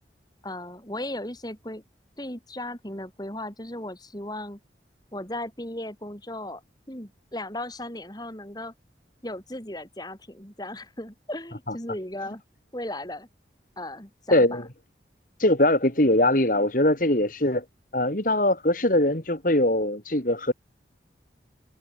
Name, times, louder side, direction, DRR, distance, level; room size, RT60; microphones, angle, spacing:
voice 1, 0.4-1.8 2.2-4.6 5.1-6.6 6.9-8.7 9.2-12.4 12.7-13.3 13.8-14.6, left 1 dB, 20° left, 5.6 m, -36 dB
voice 2, 14.3-14.6 15.4-17.6 17.9-20.5, left 1 dB, 45° left, 3.1 m, -22 dB
head